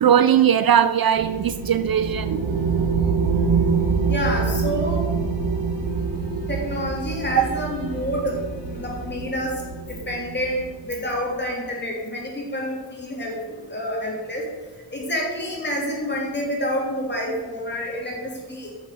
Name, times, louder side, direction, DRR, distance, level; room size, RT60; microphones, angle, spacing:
voice 1, 0.0-2.4 7.4-7.5, right 9 dB, 55° right, 12 dB, 0.5 m, -19 dB
sound 1, 1.2-11.2, right 5 dB, 80° right, 1.4 m, -25 dB
sound 2, 1.3-9.1, left 2 dB, 80° left, 3.0 m, -44 dB
voice 2, 4.1-5.0 6.5-8.4 8.7-9.6 9.9-14.4 14.9-18.7, equal, 25° left, -1 dB, 3.2 m, -28 dB
14.0 x 6.7 x 6.9 m, 1.3 s
wide cardioid pair, 175°, 43 cm